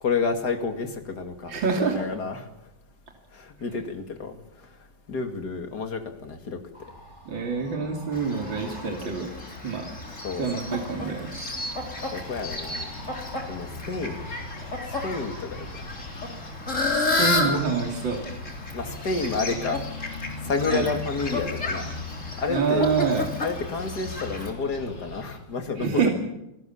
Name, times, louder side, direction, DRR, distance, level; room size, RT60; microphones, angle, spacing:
voice 1, 0.0-2.5 3.3-4.4 5.1-6.6 10.2-10.5 12.1-13.0 13.5-14.3 15.0-15.7 18.7-19.8 20.4-21.9 22.4-22.9 23.4-26.1, left 4 dB, 55° left, 6 dB, 2.9 m, -30 dB
voice 2, 1.5-2.0 7.3-9.3 9.6-9.9 10.4-11.3 17.0-18.2 20.7-20.9 22.5-23.3 25.8-26.1, right 5 dB, 70° right, 1 dB, 3.5 m, -26 dB
sound 1, 6.7-16.2, equal, 20° right, 5.2 m, -48 dB
Fowl, 8.1-24.5, left 2 dB, 35° left, 3.9 m, -32 dB
sound 2, 10.4-25.4, left 3 dB, 70° left, 4.1 m, -43 dB
28.0 x 18.5 x 7.3 m, 0.88 s
omnidirectional pair, 2.2 m